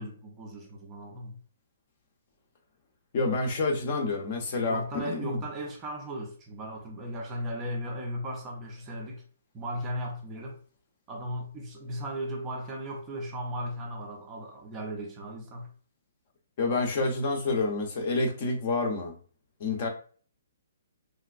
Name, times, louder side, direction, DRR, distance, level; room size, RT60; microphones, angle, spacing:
voice 1, 0.0-1.4 4.6-9.2 9.5-10.6 11.1-15.7, equal, 15° right, 0.5 m, -36 dB
voice 2, 3.1-5.4 16.6-19.2 19.6-19.9, left 3 dB, 35° left, 0.7 m, -28 dB
3.2 x 2.8 x 2.4 m
hypercardioid pair, 170°, 0 cm